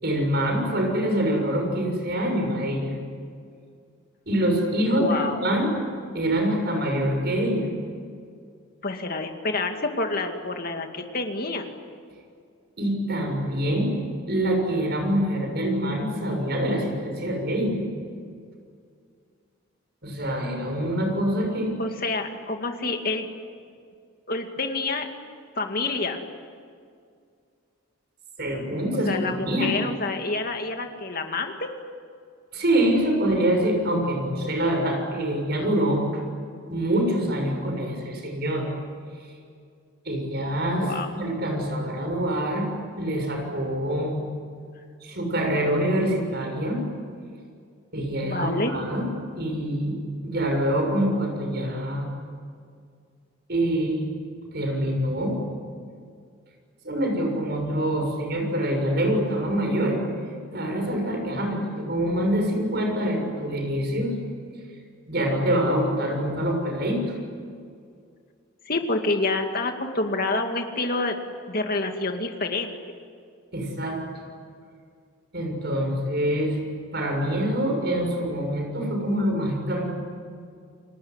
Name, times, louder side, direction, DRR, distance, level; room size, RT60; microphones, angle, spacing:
voice 1, 0.0-2.9 4.3-5.7 6.1-7.7 12.8-13.9 14.3-17.8 20.0-21.7 28.4-29.7 32.5-36.2 36.7-38.7 40.0-44.2 45.0-46.8 47.9-49.1 49.3-52.1 53.5-54.1 54.5-55.4 56.8-60.0 60.5-64.1 65.1-67.1 73.5-74.0 75.3-76.6 76.9-79.9, right 1 dB, 50° right, 3 dB, 6.7 m, -25 dB
voice 2, 4.9-5.4 8.8-11.7 21.8-23.3 24.3-25.1 25.6-26.2 29.1-31.7 40.8-41.1 48.2-48.7 68.7-71.2 71.5-72.8, left 3 dB, 45° left, 4 dB, 2.3 m, -28 dB
30.0 x 19.5 x 9.8 m, 2.2 s
head